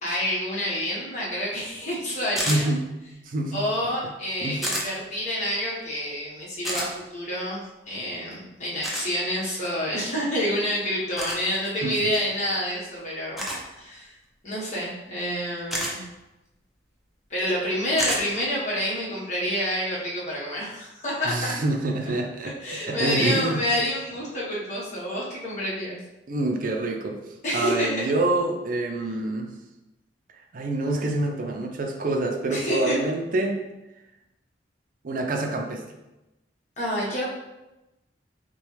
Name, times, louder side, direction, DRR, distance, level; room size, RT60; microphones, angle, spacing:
voice 1, 0.0-2.7 3.5-7.6 7.9-13.4 13.8-14.1 14.4-16.0 17.3-21.3 22.6-26.0 27.4-28.1 32.5-33.0 36.8-37.3, equal, 40° left, -6 dB, 1.3 m, -28 dB
sound 1, 2.4-2.6 4.6-4.9 6.6-6.9 8.8-9.1 11.2-11.4 13.4-13.6 15.7-15.9 18.0-18.2, equal, ahead, 0.7 m, -28 dB
voice 2, 2.5-2.8 3.3-3.6 4.4-4.6 11.8-12.1 21.3-22.5 22.9-23.6 26.3-27.2 27.5-29.5 30.3-33.6 35.0-35.8, right 2 dB, 50° right, 3 dB, 0.5 m, -26 dB
6.1 x 2.3 x 3.2 m, 0.99 s
head